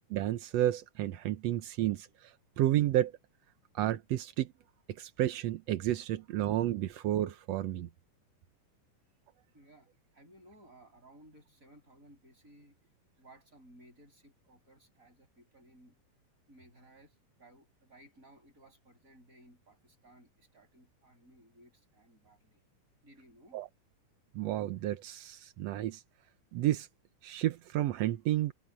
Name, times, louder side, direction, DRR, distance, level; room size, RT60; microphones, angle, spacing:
voice 1, 0.1-3.1 3.7-4.5 4.9-7.9 23.5-23.7 24.3-26.0 26.5-26.9 27.2-28.5, right 13 dB, 75° right, 1.6 m, -31 dB
voice 2, 9.5-9.9 10.1-12.8 13.2-16.0 16.5-22.6 23.0-23.6, right 1 dB, 20° right, 8.3 m, -59 dB
omnidirectional pair, 3.9 m